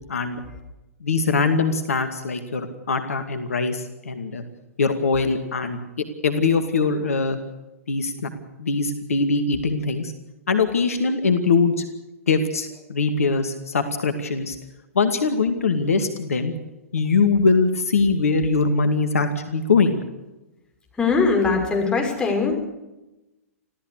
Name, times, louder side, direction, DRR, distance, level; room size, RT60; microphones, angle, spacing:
voice 1, 0.1-0.4 1.0-4.4 4.8-7.4 7.9-8.3 8.6-10.1 10.5-11.8 12.3-14.6 14.9-16.5 16.9-20.0, left 4 dB, 70° left, 8 dB, 2.4 m, -22 dB
voice 2, 20.9-22.6, left 4 dB, 10° left, 1 dB, 6.1 m, -21 dB
26.0 x 16.0 x 6.7 m, 0.99 s
figure-of-eight pair, 115°, 8 cm